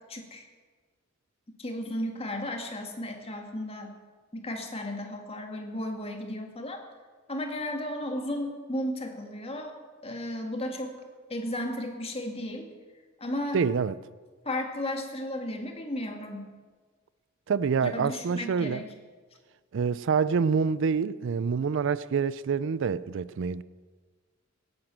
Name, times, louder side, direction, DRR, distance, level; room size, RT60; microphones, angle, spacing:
voice 1, 0.1-0.5 1.6-3.9 4.3-6.8 7.3-9.8 10.0-11.0 11.3-12.7 13.2-13.6 14.4-16.5 17.8-18.9, left 1 dB, 30° left, 2.0 m, -34 dB
voice 2, 13.5-13.9 17.5-18.8 19.7-23.6, right 6 dB, 65° right, 0.4 m, -26 dB
16.5 x 10.0 x 7.5 m
head